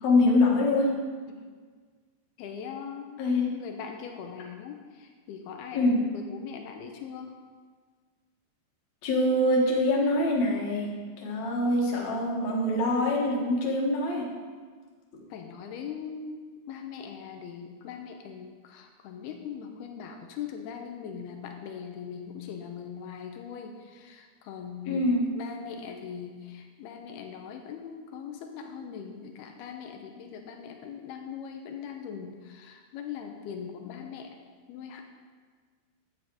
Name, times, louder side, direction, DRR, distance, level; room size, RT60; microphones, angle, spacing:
voice 1, 0.0-1.0 3.2-3.5 5.7-6.0 9.0-10.9 11.2-14.3 24.9-25.3, left 1 dB, 50° left, -2 dB, 2.4 m, -24 dB
voice 2, 2.4-7.3 15.3-16.4 16.7-25.0 25.4-34.4 34.7-35.1, left 7 dB, 80° left, 4 dB, 2.4 m, -41 dB
11.5 x 8.9 x 4.9 m, 1.5 s
omnidirectional pair, 5.3 m